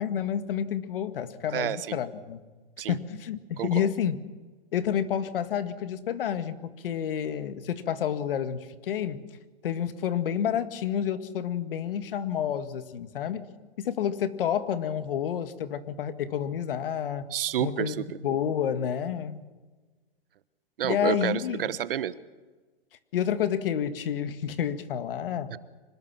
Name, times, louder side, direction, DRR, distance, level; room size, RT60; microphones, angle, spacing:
voice 1, 0.0-2.4 2.9-4.2 4.7-9.2 9.6-13.5 13.8-17.3 17.6-19.5 20.8-21.7 23.1-25.5, left 9 dB, 65° left, 10 dB, 2.0 m, -29 dB
voice 2, 1.5-2.0 2.8-3.0 3.6-3.9 17.3-18.2 20.8-22.2 25.5-25.6, right 11 dB, 65° right, 15 dB, 1.2 m, -30 dB
25.5 x 20.0 x 6.1 m, 1.3 s
hypercardioid pair, 145°, 30 cm